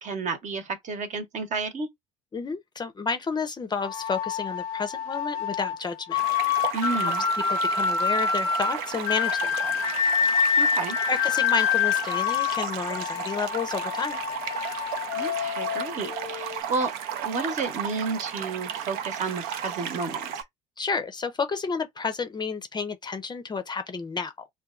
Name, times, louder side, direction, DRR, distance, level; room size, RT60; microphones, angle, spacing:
voice 1, 0.0-1.9 6.7-7.2 10.6-11.0 15.1-16.9 17.2-20.2, right 4 dB, 45° right, 1.0 m, -31 dB
voice 2, 2.3-6.2 7.0-7.1 7.5-9.7 11.1-14.2 20.8-24.3, left 5 dB, 25° left, 0.6 m, -31 dB
sound 1, 3.8-16.6, left 7 dB, 70° left, 0.6 m, -27 dB
sound 2, 6.1-20.4, right 9 dB, 60° right, 0.6 m, -34 dB
2.9 x 2.2 x 2.4 m
hypercardioid pair, 65°, 18 cm